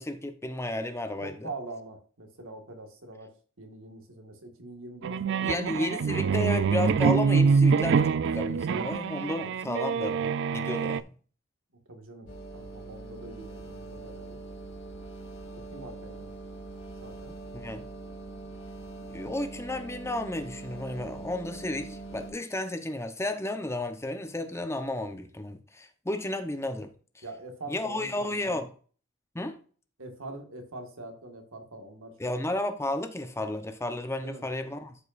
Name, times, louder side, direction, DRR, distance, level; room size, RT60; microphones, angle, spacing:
voice 1, 0.0-1.5 5.4-11.1 17.5-17.8 19.1-27.2 27.7-28.7 29.3-29.6 32.2-34.9, left 1 dB, 15° left, 0.8 m, -33 dB
voice 2, 1.2-3.3 3.6-5.5 6.3-6.7 11.9-14.4 15.7-16.3 17.0-17.3 27.2-28.6 30.0-32.1 34.2-34.5, right 2 dB, 80° right, 1.7 m, -43 dB
sound 1, 5.0-11.0, right 5 dB, 60° right, 0.4 m, -25 dB
sound 2, 12.3-22.3, right 3 dB, 60° left, 2.3 m, -43 dB
12.5 x 5.2 x 2.5 m
head